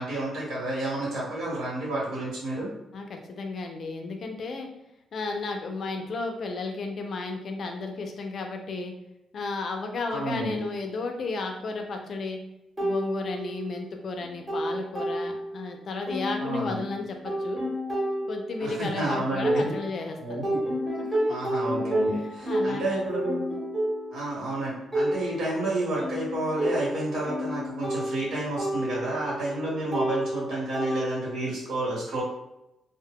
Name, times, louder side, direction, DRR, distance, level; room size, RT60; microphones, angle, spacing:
voice 1, 0.0-2.7 10.1-10.6 16.4-16.8 18.6-19.6 20.2-20.8 21.3-23.4 24.1-32.2, right 2 dB, 75° right, -6 dB, 1.2 m, -30 dB
voice 2, 2.9-4.7 5.1-8.9 9.3-12.4 12.8-17.6 18.3-20.5 21.0-21.2 22.5-23.1, left 3 dB, 45° left, 3 dB, 0.4 m, -33 dB
sound 1, 12.8-13.9 14.2-15.7 16.1-20.1 20.4-31.5, equal, ahead, 1.0 m, -31 dB
2.2 x 2.1 x 3.5 m, 0.89 s
cardioid pair, 160°, 0 cm